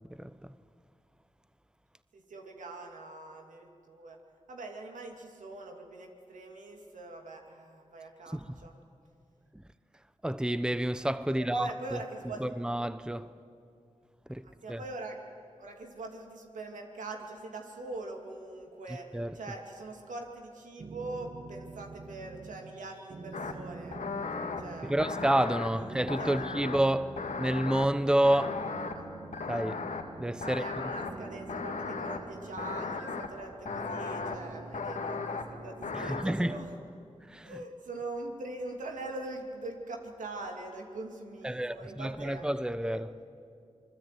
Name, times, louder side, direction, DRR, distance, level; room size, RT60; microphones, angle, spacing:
voice 1, 2.1-4.2 4.5-8.8 11.4-12.6 14.6-15.2 15.6-19.1 19.3-24.0 24.6-24.9 25.8-26.3 28.9-29.1 30.4-36.7 37.4-42.5 42.8-43.0, right 2 dB, 90° right, 2.7 m, -42 dB
voice 2, 10.2-12.0 12.4-13.3 14.3-14.8 19.1-19.4 24.8-28.6 29.5-29.8 30.2-30.6 35.9-36.6 37.3-37.6 41.4-43.1, right 1 dB, 5° right, 0.9 m, -29 dB
sound 1, 20.8-22.8 23.1-25.4 25.7-28.1 28.4-30.7 31.0-33.4 33.7-36.0, right 3 dB, 55° right, 1.8 m, -46 dB
sound 2, 23.3-23.5 23.9-24.6 25.0-25.7 26.1-26.8 27.2-27.9 28.2-28.9 29.3-30.0 30.4-31.1 31.5-32.2 32.6-33.3 33.7-34.4 34.7-35.4 35.8-36.2, left 4 dB, 80° left, 2.0 m, -36 dB
27.0 x 20.5 x 9.2 m
cardioid pair, 40°, 13 cm